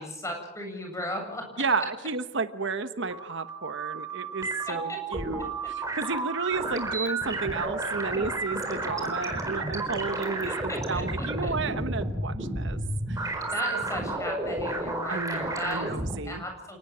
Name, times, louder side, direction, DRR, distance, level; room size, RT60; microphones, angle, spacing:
voice 1, 0.0-1.4 4.7-5.0 5.6-5.7 6.4-6.5 10.5-11.5 13.5-15.9 16.2-16.8, left 1 dB, 15° left, 3 dB, 7.6 m, -36 dB
voice 2, 1.6-12.8 13.1-13.4 15.1-16.4, right 4 dB, 60° right, 11 dB, 1.1 m, -32 dB
sound 1, 2.9-16.2, right 2 dB, 15° right, 4.3 m, -32 dB
29.0 x 19.0 x 7.5 m, 0.83 s
head